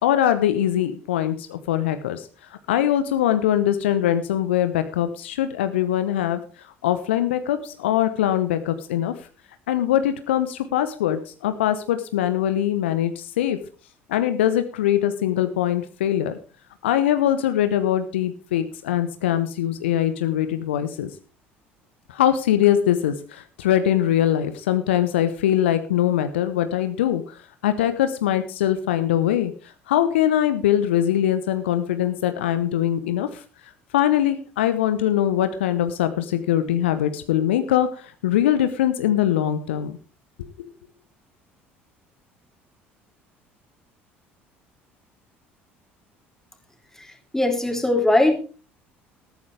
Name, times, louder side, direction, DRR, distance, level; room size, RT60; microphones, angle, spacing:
voice 1, 0.0-2.3 2.7-6.4 6.8-9.1 9.7-13.6 14.1-16.3 16.8-21.1 22.1-29.5 29.9-33.4 33.9-40.0 40.6-40.7, left 11 dB, 75° left, 10 dB, 1.0 m, -22 dB
voice 2, 47.3-48.3, left 2 dB, 5° left, 4 dB, 3.6 m, -19 dB
13.5 x 13.0 x 3.4 m, 0.37 s
figure-of-eight pair, 60°, 6 cm